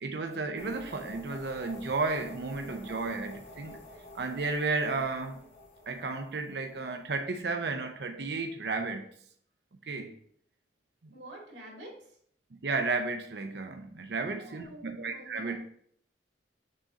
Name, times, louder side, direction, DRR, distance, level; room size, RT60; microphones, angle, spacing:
voice 1, 0.0-3.8 4.1-5.4 5.9-9.1 9.9-10.1 11.0-11.1 12.6-15.6, right 3 dB, 65° right, 5 dB, 0.6 m, -33 dB
sound 1, 0.6-7.4, left 1 dB, 65° left, 2.1 m, -49 dB
voice 2, 11.1-12.2 14.2-15.6, right 1 dB, 90° right, -3 dB, 2.3 m, -48 dB
6.3 x 3.8 x 4.1 m, 0.63 s
head